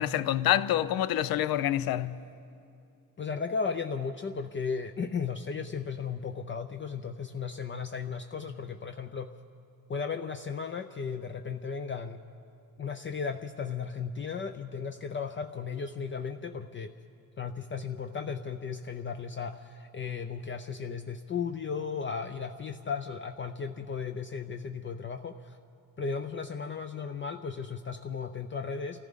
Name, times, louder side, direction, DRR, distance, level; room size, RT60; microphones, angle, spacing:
voice 1, 0.0-2.2, left 12 dB, 75° left, 0.6 m, -27 dB
voice 2, 3.2-9.3 9.9-12.2 12.8-16.9 17.4-25.6 26.0-29.0, left 5 dB, 30° left, 0.5 m, -35 dB
27.0 x 14.5 x 3.7 m
cardioid pair, 100°, 36 cm